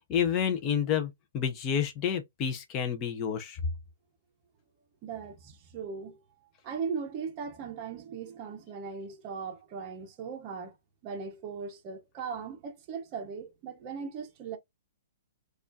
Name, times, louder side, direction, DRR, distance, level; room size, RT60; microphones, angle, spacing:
voice 1, 0.1-3.6, left 8 dB, 20° left, 0.7 m, -29 dB
voice 2, 5.0-6.2 6.6-10.8 11.0-14.6, right 6 dB, 25° right, 0.7 m, -38 dB
4.7 x 2.4 x 2.6 m
hypercardioid pair, 175°, 0 cm